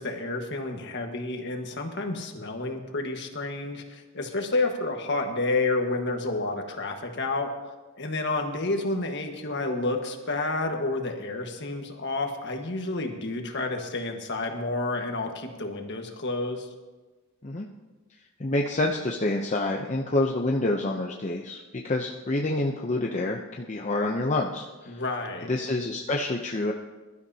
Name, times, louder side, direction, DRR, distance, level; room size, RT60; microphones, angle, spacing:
voice 1, 0.0-7.5 8.0-16.7 24.9-25.5, left 2 dB, 55° left, 4 dB, 1.5 m, -30 dB
voice 2, 18.4-25.0 25.5-26.7, left 2 dB, 35° left, 0 dB, 0.7 m, -27 dB
21.0 x 12.0 x 2.8 m, 1.2 s
head